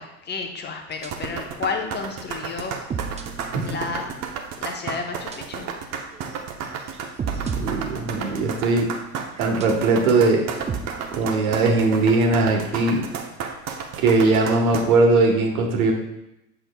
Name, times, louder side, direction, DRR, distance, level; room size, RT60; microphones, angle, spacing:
voice 1, 0.0-2.8 3.6-4.1 4.6-5.7, left 5 dB, 25° left, 4 dB, 1.0 m, -31 dB
sound 1, 0.9-1.4 1.8-2.0 2.4-4.4 5.3-5.7 6.1-6.3 6.7-8.7 9.4-10.0 10.4-11.2, right 6 dB, 15° right, 0.4 m, -34 dB
sound 2, 1.0-14.8, right 6 dB, 35° right, 0.8 m, -32 dB
voice 2, 7.5-8.9 9.4-10.4 11.1-13.0 14.0-15.9, right 3 dB, 65° right, 2 dB, 1.4 m, -19 dB
7.9 x 5.7 x 2.3 m, 0.88 s
figure-of-eight pair, 75°, 45 cm